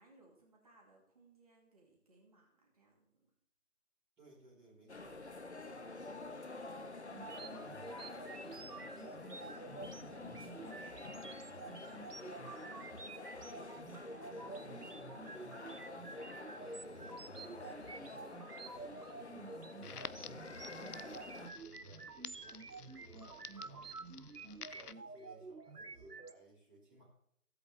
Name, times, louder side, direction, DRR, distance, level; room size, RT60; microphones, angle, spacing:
voice 1, 0.0-3.3 14.2-16.1 20.6-22.0, right 3 dB, 25° right, -2 dB, 2.3 m, -66 dB
voice 2, 4.2-5.2 5.6-9.6 10.1-12.7 13.3-13.7 14.0-14.8 15.8-16.1 16.5-18.6 19.0-19.9 20.5-21.2 21.5-23.9 24.4-27.2, right 2 dB, 5° right, -18 dB, 1.7 m, -62 dB
sound 1, 4.9-21.5, left 3 dB, 45° left, 1.0 m, -48 dB
sound 2, 7.1-26.3, right 4 dB, 85° right, 1.1 m, -50 dB
Crackle, 19.8-24.9, left 6 dB, 75° left, 0.7 m, -52 dB
15.5 x 8.3 x 3.3 m, 0.72 s
figure-of-eight pair, 160°, 46 cm